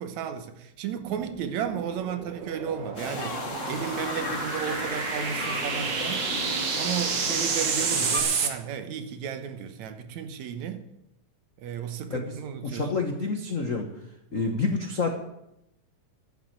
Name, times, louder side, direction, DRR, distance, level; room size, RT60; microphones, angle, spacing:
voice 1, 0.0-6.3 6.8-10.8 11.6-12.9 14.3-14.7, right 8 dB, 75° right, 2.3 m, -34 dB
sound 1, 1.0-8.5, right 5 dB, 50° right, 1.4 m, -30 dB
sound 2, 3.0-8.2, left 3 dB, 45° left, 0.9 m, -35 dB
voice 2, 12.1-13.9 14.3-15.1, left 4 dB, 75° left, 0.7 m, -28 dB
11.5 x 7.8 x 9.0 m
omnidirectional pair, 3.5 m